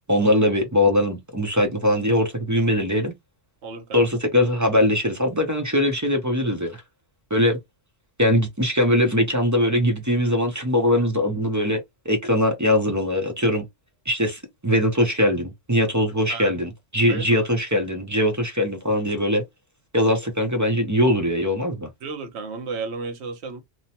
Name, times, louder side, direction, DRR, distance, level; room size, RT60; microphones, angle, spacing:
voice 1, 0.1-3.1 3.9-6.8 7.3-7.6 8.2-13.6 14.1-19.4 19.9-21.9, left 1 dB, 20° right, 0.5 m, -21 dB
voice 2, 3.6-4.0 16.3-16.5 17.1-17.5 22.0-23.6, right 4 dB, 70° right, 1.0 m, -33 dB
2.9 x 2.1 x 2.8 m
omnidirectional pair, 1.2 m